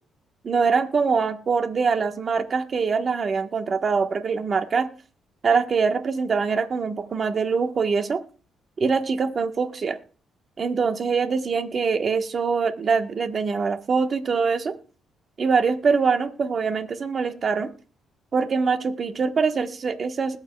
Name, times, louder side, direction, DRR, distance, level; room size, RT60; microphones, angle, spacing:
voice 1, 0.4-4.9 5.4-8.2 8.8-10.0 10.6-14.7 15.4-17.7 18.3-20.4, right 5 dB, 45° right, 7 dB, 1.2 m, -23 dB
20.5 x 7.4 x 2.3 m, 0.39 s
cardioid pair, 90°, 0 cm